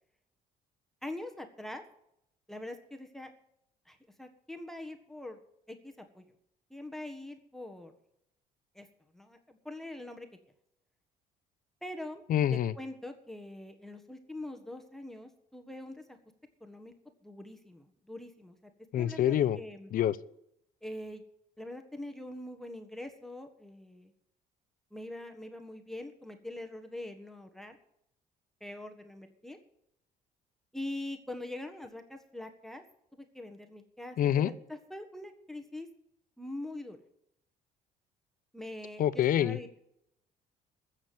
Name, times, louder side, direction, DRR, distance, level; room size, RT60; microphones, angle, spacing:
voice 1, 1.0-1.8 2.5-3.3 3.9-5.4 5.7-6.2 6.7-7.9 8.7-8.9 9.1-10.3 11.8-12.2 12.7-16.2 16.6-16.9 17.2-18.5 19.0-19.9 20.8-21.2 21.6-24.1 24.9-27.8 28.6-29.6 30.7-32.8 33.1-35.9 36.4-37.0 38.5-39.8, left 1 dB, ahead, 6 dB, 1.5 m, -43 dB
voice 2, 12.3-12.7 18.9-19.6 19.9-20.2 34.2-34.5 39.0-39.8, left 10 dB, 55° left, 17 dB, 0.7 m, -26 dB
14.0 x 7.3 x 7.8 m, 0.78 s
cardioid pair, 110°, 17 cm